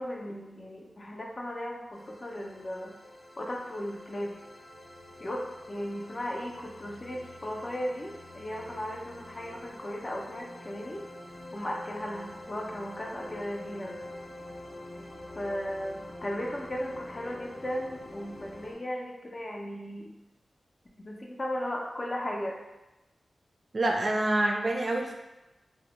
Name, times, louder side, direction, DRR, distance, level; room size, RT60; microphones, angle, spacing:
voice 1, 0.0-2.9 3.4-4.4 5.2-11.0 11.5-14.0 15.4-20.1 21.0-22.6, equal, 40° left, -1 dB, 0.4 m, -36 dB
sound 1, 1.9-18.7, left 1 dB, 85° left, 0.9 m, -46 dB
voice 2, 23.7-25.1, right 1 dB, 55° right, 1 dB, 0.3 m, -26 dB
2.2 x 2.1 x 2.9 m, 1.0 s
cardioid pair, 45°, 0 cm